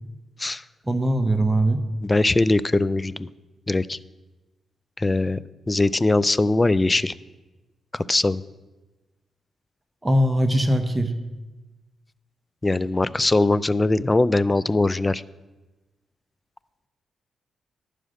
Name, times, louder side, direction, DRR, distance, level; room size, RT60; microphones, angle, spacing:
voice 1, 0.9-1.8 10.0-11.1, right 1 dB, 20° right, 9 dB, 0.7 m, -21 dB
voice 2, 2.0-3.3 3.7-4.0 5.0-5.4 5.7-7.1 7.9-8.4 12.6-15.2, left 2 dB, 25° left, 19 dB, 0.3 m, -21 dB
11.0 x 5.1 x 6.4 m, 1.2 s
cardioid pair, 70°, 0 cm